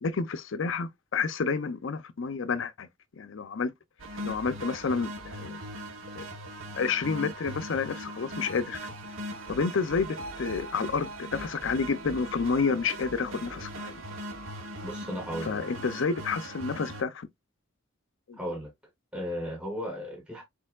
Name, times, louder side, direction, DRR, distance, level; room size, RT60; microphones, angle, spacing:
voice 1, 0.0-2.9 3.2-3.7 4.2-5.6 6.2-6.3 6.8-8.8 9.5-14.0 15.4-17.3 18.3-18.4, left 5 dB, 70° left, 0.5 m, -30 dB
sound 1, 4.0-17.0, right 1 dB, 80° right, 1.0 m, -40 dB
voice 2, 14.8-15.6 18.4-18.7 19.1-20.4, equal, 5° right, 1.7 m, -35 dB
4.4 x 4.3 x 2.3 m
head